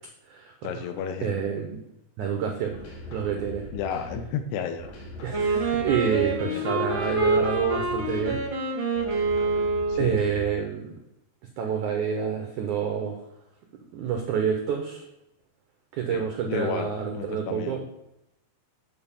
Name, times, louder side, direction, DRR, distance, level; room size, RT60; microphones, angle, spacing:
voice 1, 0.6-1.4 3.7-4.9 6.2-6.7 9.9-10.2 16.1-17.8, left 7 dB, 80° left, 8 dB, 2.9 m, -33 dB
voice 2, 1.2-1.8 2.2-2.8 3.1-3.6 5.2-8.4 10.0-11.0 11.6-13.2 13.9-15.1 15.9-17.8, right 7 dB, 80° right, 3 dB, 1.7 m, -28 dB
sound 1, 2.7-4.4 4.8-6.5 6.9-8.6 9.0-10.7, left 1 dB, 60° left, 3.1 m, -41 dB
Wind instrument woodwind instrument, 5.3-10.3, right 3 dB, 50° right, 0.9 m, -26 dB
9.5 x 4.4 x 7.1 m, 0.84 s
omnidirectional pair, 4.9 m